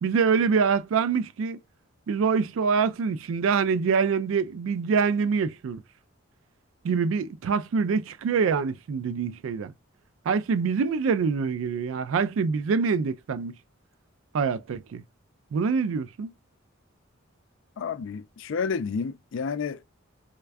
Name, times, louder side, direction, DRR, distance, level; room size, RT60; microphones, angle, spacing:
voice 1, 0.0-1.6 2.1-5.8 6.8-9.7 10.3-13.5 14.3-15.0 15.5-16.3, right 5 dB, 85° right, 0.3 m, -25 dB
voice 2, 17.8-19.8, left 5 dB, 70° left, 0.4 m, -30 dB
3.4 x 2.1 x 3.4 m
head